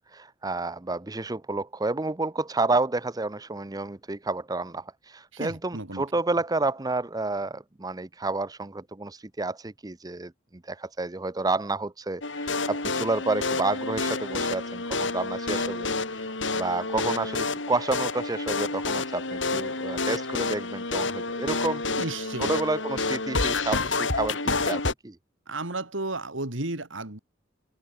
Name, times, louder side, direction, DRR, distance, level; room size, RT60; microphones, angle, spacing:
voice 1, 0.0-10.3 10.6-22.0 22.4-25.2, right 3 dB, 20° right, 0.7 m, -30 dB
voice 2, 5.3-6.0 21.9-22.6 25.5-27.2, right 2 dB, 80° right, 3.3 m, -33 dB
sound 1, 12.2-24.9, left 3 dB, 65° left, 4.1 m, -29 dB
open air
head